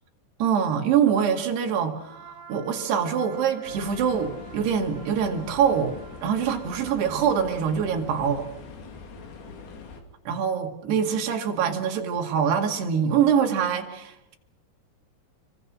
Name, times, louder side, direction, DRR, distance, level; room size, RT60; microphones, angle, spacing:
voice 1, 0.4-8.5 10.3-14.4, right 7 dB, 80° right, 4 dB, 4.3 m, -24 dB
Trumpet, 2.0-8.4, right 5 dB, 10° right, 3.5 m, -49 dB
sound 1, 3.7-10.0, left 4 dB, 65° left, 4.4 m, -43 dB
28.5 x 23.0 x 6.3 m, 0.80 s
omnidirectional pair, 4.7 m